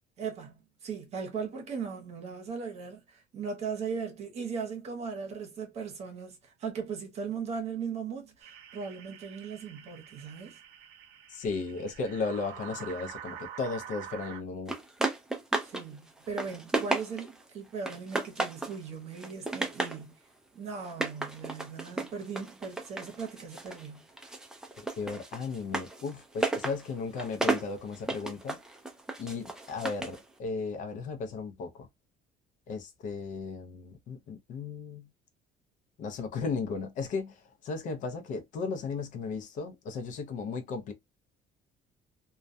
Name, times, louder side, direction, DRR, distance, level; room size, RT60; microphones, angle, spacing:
voice 1, 0.2-0.5 0.8-10.6 15.6-20.1 20.5-24.0, right 5 dB, 45° right, 0.8 m, -38 dB
sound 1, 8.4-14.4, right 9 dB, 75° right, 0.6 m, -46 dB
voice 2, 11.3-14.7 24.8-28.6 29.2-31.9 32.7-35.1 36.0-40.9, left 4 dB, 55° left, 0.6 m, -35 dB
sound 2, 14.7-15.8 16.2-17.4 17.8-18.8 19.1-20.0 20.8-23.9 24.2-30.2, right 2 dB, 5° right, 0.3 m, -33 dB
2.2 x 2.2 x 2.5 m
cardioid pair, 165°, 16 cm